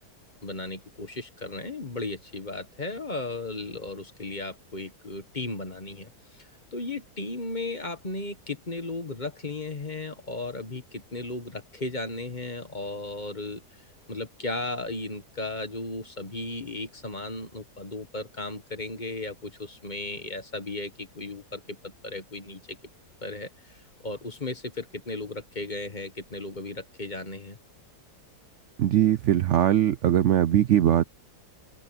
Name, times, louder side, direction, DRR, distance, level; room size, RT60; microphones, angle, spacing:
voice 1, 0.4-6.1 6.7-13.6 14.1-22.8 23.2-23.8 24.0-27.6, left 2 dB, 30° left, 1.4 m, -35 dB
voice 2, 28.8-31.0, right 11 dB, 70° right, 0.7 m, -21 dB
open air
omnidirectional pair, 1.8 m